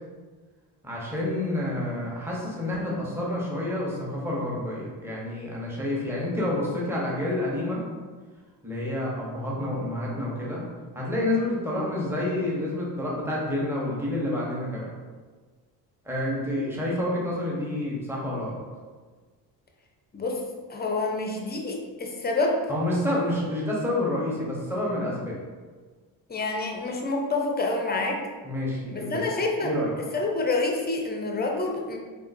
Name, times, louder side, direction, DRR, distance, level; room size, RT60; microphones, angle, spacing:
voice 1, 0.8-7.9 8.6-10.6 10.9-14.9 16.0-18.6 22.7-25.4 28.4-29.3 29.6-29.9, left 1 dB, 5° right, -4 dB, 1.0 m, -28 dB
voice 2, 20.7-22.6 26.3-28.2 28.9-29.8 30.1-32.0, left 3 dB, 20° left, 1 dB, 0.6 m, -27 dB
3.6 x 2.5 x 2.6 m, 1.4 s
supercardioid pair, 60°, 50 cm